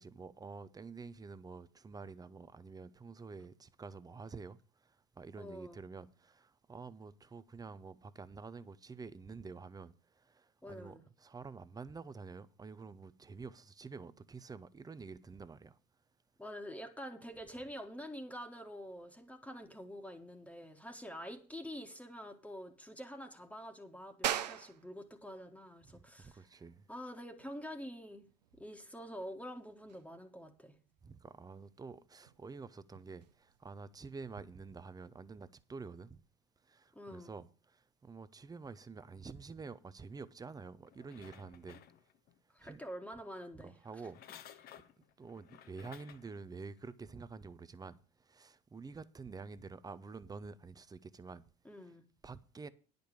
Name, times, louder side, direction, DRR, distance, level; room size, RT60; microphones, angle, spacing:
voice 1, 0.0-4.6 5.2-9.9 10.4-10.9 11.2-15.7 25.9-26.8 31.0-36.2 36.7-37.5 38.0-41.8 42.6-42.8 43.6-44.2 45.2-48.0 48.3-51.4 52.2-52.7, right 4 dB, 20° right, 0.7 m, -48 dB
voice 2, 5.4-5.8 10.6-11.0 16.4-26.5 26.9-28.2 28.6-30.8 36.9-37.3 42.5-44.1 51.6-52.0, equal, 5° left, 1.5 m, -47 dB
sound 1, 24.2-34.5, right 11 dB, 85° right, 0.6 m, -45 dB
sound 2, 40.9-42.4 43.9-46.4 46.9-47.0, left 10 dB, 45° left, 0.9 m, -56 dB
10.5 x 5.2 x 8.3 m
hypercardioid pair, 70°, 21 cm